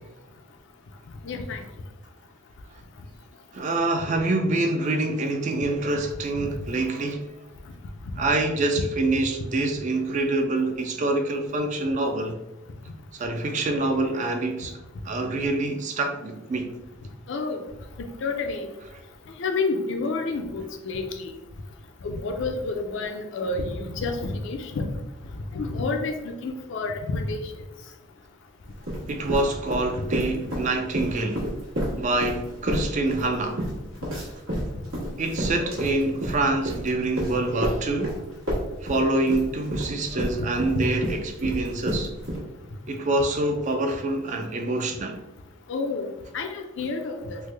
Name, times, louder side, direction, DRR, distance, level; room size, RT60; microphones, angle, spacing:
voice 1, 1.3-1.6 17.3-17.6 18.2-18.6 19.4-21.0 22.0-24.2 24.5-24.9 25.6-27.4 45.7-46.1 46.3-47.1, left 3 dB, 60° left, 6 dB, 0.4 m, -29 dB
voice 2, 3.5-7.2 8.2-12.4 13.1-14.7 15.0-16.7 18.8-18.9 29.1-31.5 32.0-33.6 35.2-38.1 38.8-42.1 42.9-45.2, right 2 dB, 35° right, 5 dB, 0.3 m, -26 dB
sound 1, 28.7-30.7 30.9-38.2 38.5-42.4, equal, 90° right, 1.3 m, -29 dB
3.2 x 2.1 x 3.2 m, 0.95 s
head